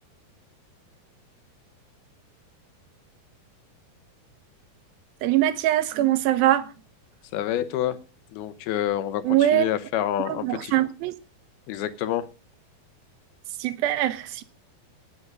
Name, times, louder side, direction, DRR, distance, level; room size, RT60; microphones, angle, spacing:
voice 1, 5.2-6.7 9.2-9.7 10.3-11.2 13.6-14.4, right 13 dB, 75° right, 2.5 m, -22 dB
voice 2, 7.3-8.0 8.3-9.2 9.5-10.7 11.7-12.3, left 11 dB, 80° left, 2.9 m, -27 dB
18.5 x 7.2 x 5.1 m
omnidirectional pair, 4.5 m